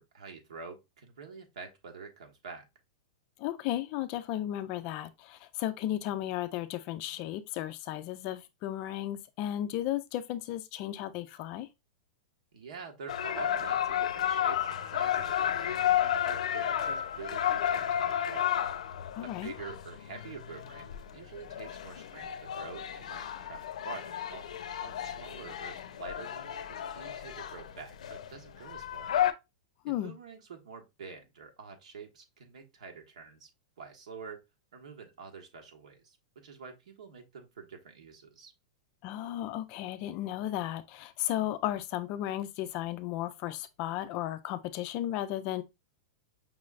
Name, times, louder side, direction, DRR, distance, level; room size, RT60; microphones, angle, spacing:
voice 1, 0.0-2.7 12.5-18.6 19.2-24.5 24.8-29.2 29.9-33.5 33.8-34.4 34.7-38.5, right 5 dB, 85° right, 1.3 m, -47 dB
voice 2, 3.4-11.7 19.1-19.5 29.8-30.1 39.0-45.6, left 13 dB, 30° left, 0.3 m, -34 dB
sound 1, 13.1-29.3, left 10 dB, 80° left, 0.5 m, -32 dB
5.4 x 3.2 x 2.4 m
supercardioid pair, 175°, 4 cm